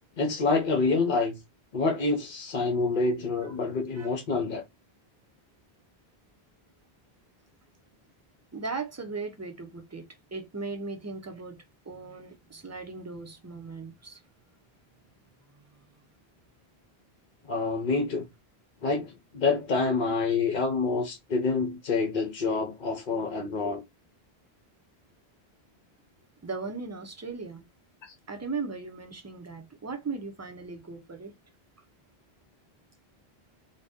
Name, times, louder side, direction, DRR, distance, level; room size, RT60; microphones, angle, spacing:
voice 1, 0.2-1.4 1.7-4.6 17.4-18.3 18.8-23.8 28.0-28.1, left 4 dB, 60° left, 0.7 m, -27 dB
voice 2, 8.5-14.2 26.4-27.6 28.3-31.3, right 4 dB, 25° right, 0.4 m, -38 dB
2.6 x 2.1 x 3.4 m
omnidirectional pair, 1.1 m